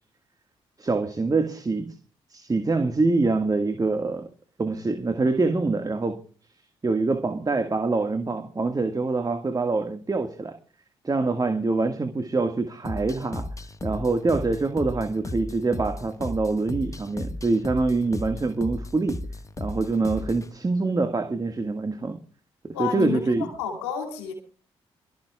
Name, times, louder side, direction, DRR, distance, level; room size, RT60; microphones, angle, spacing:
voice 1, 0.8-1.9 2.3-4.3 4.6-6.2 6.8-10.6 11.0-13.5 13.8-19.3 19.6-22.2 22.6-23.5, right 3 dB, 30° right, 1.7 m, -25 dB
sound 1, 12.8-20.5, left 2 dB, 25° left, 1.4 m, -35 dB
voice 2, 22.7-24.3, left 8 dB, 85° left, 2.9 m, -30 dB
27.0 x 13.5 x 2.3 m
hypercardioid pair, 40°, 13 cm